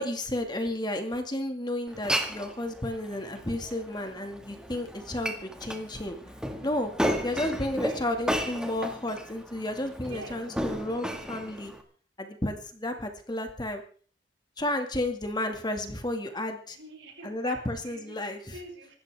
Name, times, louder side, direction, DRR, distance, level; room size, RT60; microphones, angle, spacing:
voice 1, 0.0-6.2 6.6-6.9 7.2-11.7 12.2-13.8 14.6-16.8 17.2-18.4, left 1 dB, 25° left, 5 dB, 2.2 m, -32 dB
Glass, 1.9-11.8, equal, 5° right, 2.0 m, -34 dB
voice 2, 7.7-8.1 10.1-10.4 12.9-13.1 16.7-19.0, right 2 dB, 85° right, 0 dB, 7.5 m, -46 dB
25.0 x 13.0 x 3.6 m, 0.43 s
head